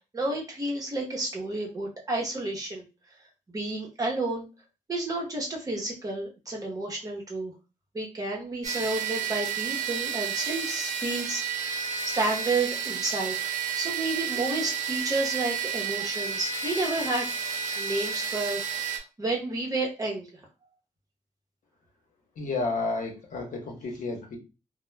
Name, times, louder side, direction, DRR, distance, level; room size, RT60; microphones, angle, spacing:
voice 1, 0.1-2.8 3.5-4.5 4.9-7.5 7.9-11.8 12.1-13.5 13.8-17.3 17.8-20.3, right 2 dB, 25° right, -2 dB, 0.8 m, -31 dB
sound 1, 8.6-19.0, right 7 dB, 70° right, 0.5 m, -31 dB
voice 2, 22.4-24.4, left 3 dB, 75° left, 1 dB, 0.8 m, -31 dB
2.2 x 2.1 x 3.0 m, 0.30 s
wide cardioid pair, 175°, 14 cm